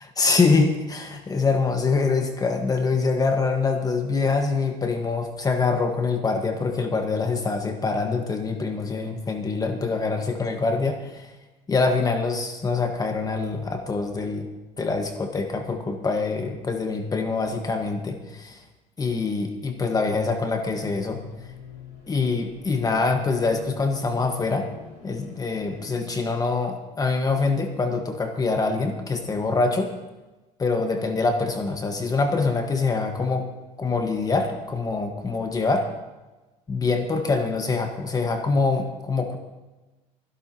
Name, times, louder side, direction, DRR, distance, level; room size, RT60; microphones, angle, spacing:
voice 1, 0.2-11.3 11.7-14.5 14.8-18.6 19.0-21.2 22.1-24.7 25.0-29.9 30.6-33.5 33.8-35.9 36.7-39.4, left 4 dB, 25° left, 4 dB, 1.5 m, -24 dB
sound 1, 20.6-26.0, left 4 dB, 75° left, 5.3 m, -45 dB
24.5 x 11.5 x 3.0 m, 1.1 s
supercardioid pair, 95°, 14 cm